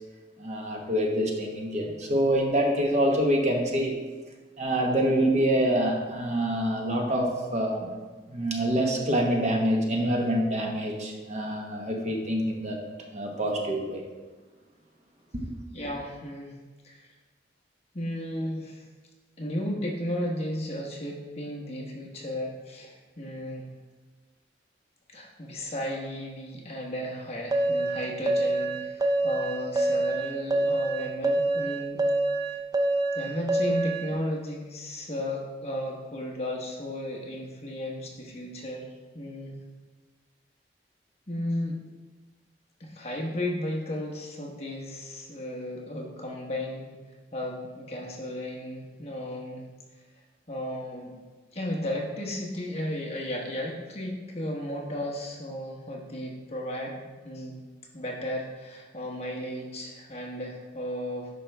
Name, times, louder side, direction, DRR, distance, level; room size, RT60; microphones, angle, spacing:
voice 1, 0.4-3.9 4.6-7.9 8.3-12.8 13.1-14.0, right 1 dB, 40° right, 0 dB, 1.1 m, -26 dB
voice 2, 15.7-16.5 16.8-17.1 17.9-18.8 19.4-23.7 25.1-32.0 33.1-38.9 39.1-39.5 41.3-41.8 42.8-46.9 47.3-49.6 50.5-51.2 51.5-57.6 57.9-61.3, left 1 dB, 35° left, -1 dB, 1.2 m, -34 dB
sound 1, 27.5-34.1, right 2 dB, 20° right, 0.5 m, -26 dB
10.5 x 5.4 x 3.4 m, 1.3 s
head